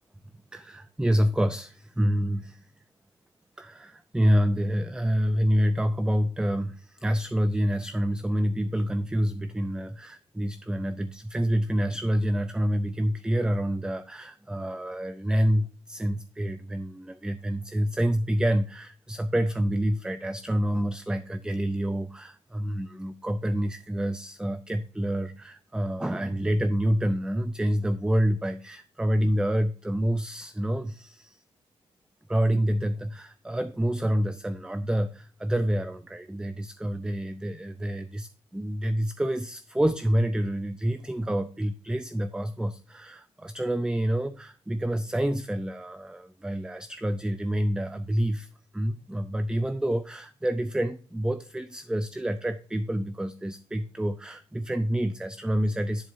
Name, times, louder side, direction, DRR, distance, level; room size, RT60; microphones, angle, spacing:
voice 1, 0.5-2.6 3.6-31.4 32.3-56.1, equal, 5° right, 11 dB, 0.6 m, -27 dB
11.0 x 7.5 x 2.6 m, 0.38 s
cardioid pair, 80°, 12 cm